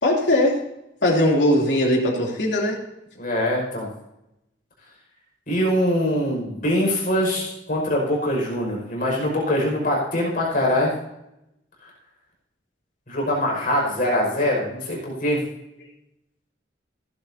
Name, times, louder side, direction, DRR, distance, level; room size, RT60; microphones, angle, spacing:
voice 1, 0.0-0.6 1.0-2.8, left 1 dB, 80° left, -2 dB, 3.1 m, -20 dB
voice 2, 3.2-3.9 5.5-10.9 11.8-11.9 13.1-15.4, left 1 dB, 50° left, -2 dB, 5.6 m, -23 dB
16.0 x 11.5 x 2.8 m, 0.87 s
head